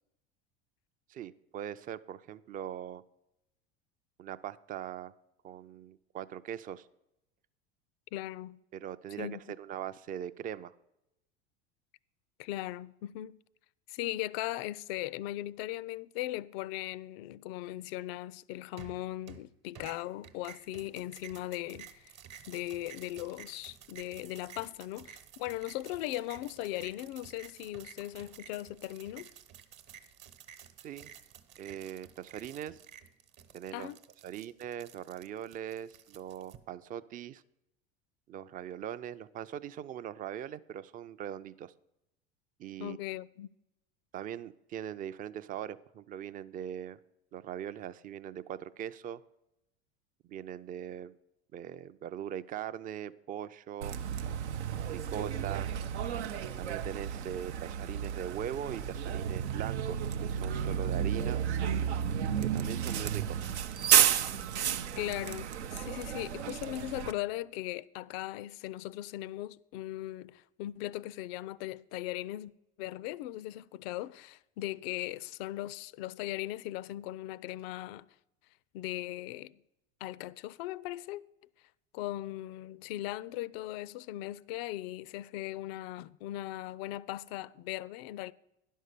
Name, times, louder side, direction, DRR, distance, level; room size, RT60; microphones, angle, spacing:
voice 1, 1.1-3.0 4.2-5.1 5.4-6.9 8.7-10.7 30.8-31.1 31.6-32.8 33.5-33.9 34.2-37.4 38.3-41.7 42.6-43.0 44.1-47.0 47.3-49.2 50.3-51.1 51.5-54.0 54.9-55.7 56.6-61.4 62.4-63.4, right 10 dB, 25° right, 0.4 m, -41 dB
voice 2, 8.1-8.6 9.2-9.4 12.4-13.4 13.9-22.1 22.5-29.3 33.7-34.0 42.8-43.5 65.0-72.5 72.8-78.1 78.7-79.6 80.0-81.2 81.9-88.3, left 15 dB, 60° left, 0.4 m, -38 dB
sound 1, 18.8-19.5 19.8-36.6, right 9 dB, 50° right, 1.1 m, -52 dB
Bus, 53.8-67.1, right 9 dB, 90° right, 0.6 m, -32 dB
11.0 x 5.5 x 6.6 m
hypercardioid pair, 90°, 33 cm